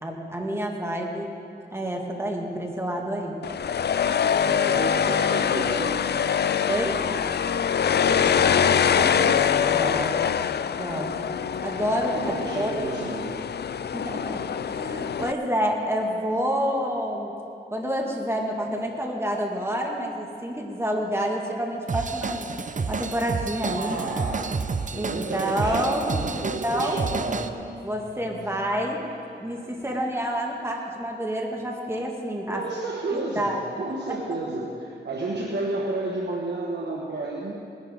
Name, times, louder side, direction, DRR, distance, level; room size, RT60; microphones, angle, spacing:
voice 1, 0.0-1.3 1.7-3.4 6.7-7.0 9.7-10.2 10.8-11.1 11.6-12.8 13.9-17.3 17.7-22.5 22.9-24.0 25.0-27.0 27.8-29.0 29.4-32.6 33.1-33.6, equal, 15° right, 0 dB, 2.0 m, -28 dB
sound 1, 3.4-15.3, left 8 dB, 65° left, 0.4 m, -24 dB
voice 2, 4.4-6.1 8.0-9.5 12.1-13.3 23.7-24.5 24.9-27.5 32.5-37.5, right 2 dB, 70° right, -3 dB, 1.4 m, -31 dB
Drum kit / Drum, 21.9-27.5, right 4 dB, 45° right, 0.6 m, -30 dB
sound 2, 25.9-31.1, equal, 90° right, 1.6 m, -47 dB
19.5 x 11.0 x 3.8 m, 2.7 s
cardioid pair, 55°, 18 cm